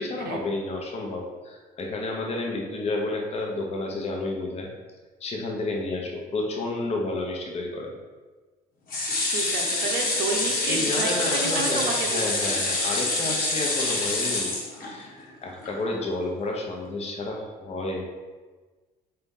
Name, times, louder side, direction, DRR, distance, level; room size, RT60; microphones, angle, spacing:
voice 1, 0.0-4.7 5.2-7.9 10.7-14.5 14.9-18.1, left 2 dB, 40° left, 0 dB, 0.8 m, -31 dB
sound 1, 8.9-15.2 15.6-15.7 16.0-16.1, left 2 dB, 60° left, 1.2 m, -26 dB
voice 2, 9.3-12.6, right 4 dB, 70° right, 1 dB, 0.7 m, -31 dB
4.0 x 3.3 x 3.7 m, 1.3 s
cardioid pair, 110°, 17 cm